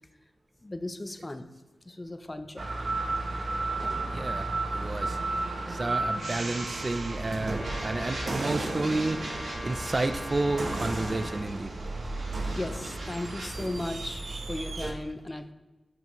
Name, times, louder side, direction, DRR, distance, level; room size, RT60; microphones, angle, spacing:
voice 1, 0.6-1.5 1.8-2.7 12.5-15.5, left 1 dB, 25° left, 9 dB, 0.5 m, -36 dB
sound 1, 2.6-14.9, right 2 dB, 60° right, 0.8 m, -33 dB
voice 2, 4.1-4.5 4.7-5.2 5.7-9.2 9.6-11.7, right 2 dB, 35° right, 10 dB, 0.4 m, -30 dB
Brass instrument, 7.4-11.5, equal, 5° right, 2.3 m, -40 dB
sound 2, 7.6-13.5, right 1 dB, 75° right, 2.1 m, -43 dB
8.9 x 5.5 x 3.0 m, 1.1 s
wide cardioid pair, 85°, 0 cm